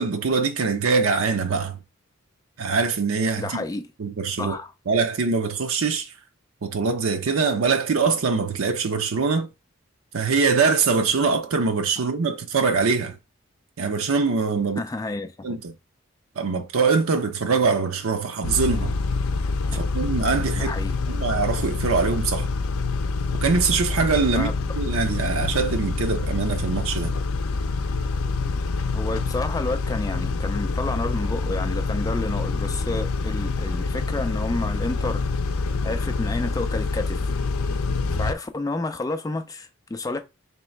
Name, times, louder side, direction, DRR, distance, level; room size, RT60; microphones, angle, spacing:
voice 1, 0.0-1.8 2.6-3.6 4.0-4.6 4.9-6.1 6.6-9.5 10.1-13.2 13.8-14.8 15.4-15.7 16.4-18.9 19.7-20.7 21.1-22.5 23.4-27.1, right 4 dB, 80° right, 0.6 m, -23 dB
voice 2, 3.4-3.9 4.4-4.7 12.0-12.1 14.8-15.6 19.7-19.8 20.6-21.0 24.3-24.5 28.9-35.3 35.8-37.3 38.1-40.2, left 2 dB, 15° left, 0.3 m, -30 dB
Car / Idling / Accelerating revving vroom, 18.4-38.3, left 3 dB, 85° left, 0.5 m, -26 dB
3.1 x 3.0 x 4.4 m
head